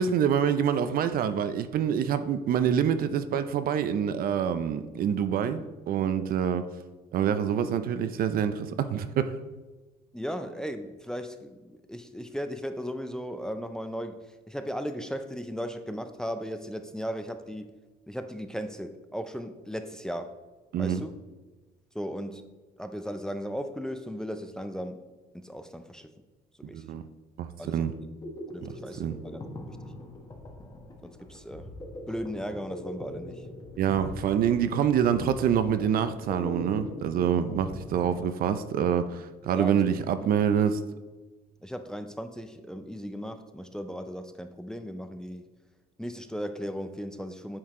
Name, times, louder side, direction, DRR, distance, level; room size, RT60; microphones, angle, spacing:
voice 1, 0.0-6.6 7.1-9.4 20.7-21.0 26.7-27.0 27.4-27.9 28.6-28.7 29.0-29.2 33.8-40.8, right 8 dB, 60° right, 11 dB, 0.5 m, -26 dB
voice 2, 10.1-17.7 18.1-20.3 20.8-21.2 21.9-22.5 22.8-25.0 25.3-26.1 26.6-26.9 27.6-27.8 28.5-29.9 31.0-31.7 32.1-33.5 34.0-34.1 39.6-39.9 41.6-45.5 46.0-47.6, equal, 5° left, 8 dB, 0.5 m, -36 dB
sound 1, 28.2-38.7, left 1 dB, 25° left, 1.2 m, -42 dB
8.6 x 4.5 x 3.7 m, 1.2 s
cardioid pair, 110°, 17 cm